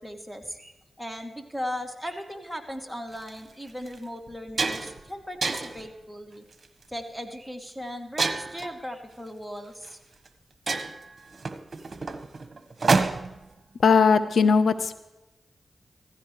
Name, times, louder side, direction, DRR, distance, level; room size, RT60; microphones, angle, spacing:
voice 1, 0.0-6.4 6.9-10.0, equal, ahead, 4 dB, 2.6 m, -37 dB
sound 1, 3.1-3.3 3.9-4.0 4.3-5.0 5.4-5.9 6.5-6.8 8.2-8.7 9.8-9.9 10.3-10.4 10.7-13.4, right 4 dB, 55° right, 1.3 m, -27 dB
voice 2, 13.8-14.9, left 5 dB, 80° left, 12 dB, 0.9 m, -19 dB
16.0 x 15.5 x 3.2 m, 0.97 s
cardioid pair, 40°, 0 cm